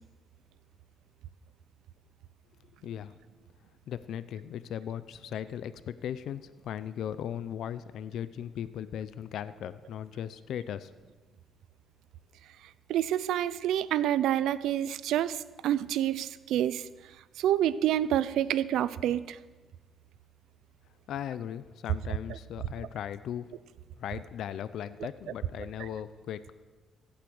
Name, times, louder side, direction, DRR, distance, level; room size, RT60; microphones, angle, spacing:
voice 1, 2.8-3.1 3.9-10.9 21.1-23.5 24.0-26.5, left 9 dB, 75° left, 14 dB, 0.6 m, -38 dB
voice 2, 12.9-16.8 17.4-19.4, right 11 dB, 85° right, 16 dB, 0.6 m, -28 dB
15.0 x 8.7 x 7.9 m, 1.3 s
cardioid pair, 90°, 0 cm